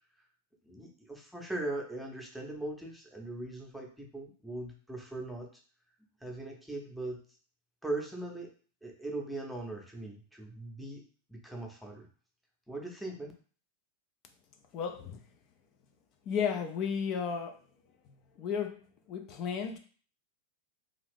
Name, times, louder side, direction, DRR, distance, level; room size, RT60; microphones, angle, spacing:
voice 1, 0.6-5.5 6.2-7.2 7.8-8.5 8.8-11.0 11.3-12.1 12.7-13.3, right 2 dB, ahead, 0 dB, 0.8 m, -40 dB
voice 2, 14.7-15.2 16.3-17.6 18.1-19.8, left 7 dB, 40° left, 5 dB, 0.4 m, -34 dB
2.8 x 2.5 x 3.3 m, 0.41 s
figure-of-eight pair, 90°, 0 cm